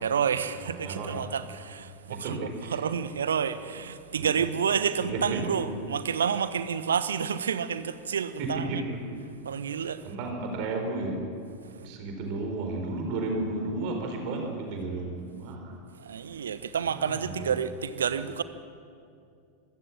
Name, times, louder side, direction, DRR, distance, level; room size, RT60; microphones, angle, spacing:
voice 1, 0.0-8.8 9.4-10.0 16.0-18.4, right 7 dB, 65° right, 1.1 m, -29 dB
voice 2, 0.6-1.2 2.1-2.8 4.2-4.3 5.0-5.7 8.4-9.0 10.0-11.2 11.7-15.8 16.3-16.4 16.9-17.5, right 2 dB, 45° right, 4.8 m, -33 dB
26.5 x 16.0 x 7.7 m
figure-of-eight pair, 90°, 0 cm